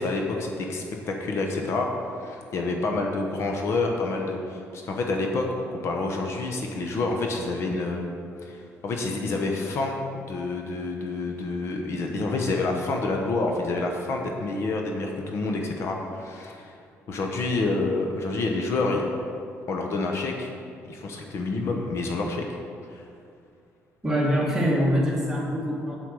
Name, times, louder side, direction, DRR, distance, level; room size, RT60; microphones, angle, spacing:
voice 1, 0.0-1.9 2.1-8.1 8.4-16.7 17.1-19.0 19.7-20.5 20.9-22.5 22.9-23.0, left 3 dB, 55° left, 2 dB, 1.0 m, -28 dB
voice 2, 24.0-26.0, equal, 10° right, -5 dB, 2.1 m, -24 dB
8.3 x 7.7 x 4.8 m, 2.4 s
cardioid pair, 135°, 5 cm